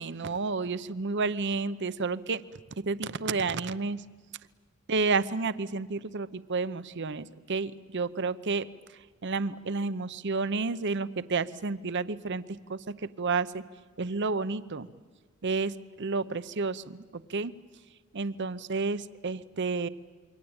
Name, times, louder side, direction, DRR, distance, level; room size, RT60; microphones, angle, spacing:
voice 1, 0.0-2.4 2.8-4.0 4.9-8.7 9.2-12.4 12.7-13.6 14.0-14.9 15.4-17.5 18.1-19.9, right 4 dB, 55° right, 14 dB, 0.8 m, -30 dB
27.5 x 23.5 x 8.8 m, 1.5 s
head